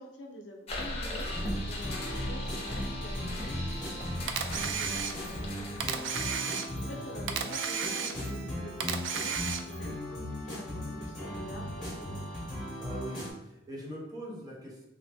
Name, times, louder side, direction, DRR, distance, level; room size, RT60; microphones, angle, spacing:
voice 1, 0.0-12.2, left 1 dB, 70° left, 1 dB, 0.5 m, -47 dB
sound 1, 0.7-7.2, left 1 dB, 35° left, 0.7 m, -38 dB
sound 2, 1.2-13.3, equal, 5° left, 1.0 m, -38 dB
voice 2, 3.1-3.6 6.8-6.9 12.8-14.9, equal, 20° right, -4 dB, 0.8 m, -43 dB
Camera, 4.3-5.4 5.8-6.9 7.3-8.4 8.8-9.9, right 6 dB, 80° right, 0.3 m, -33 dB
3.2 x 2.0 x 3.3 m, 0.88 s
head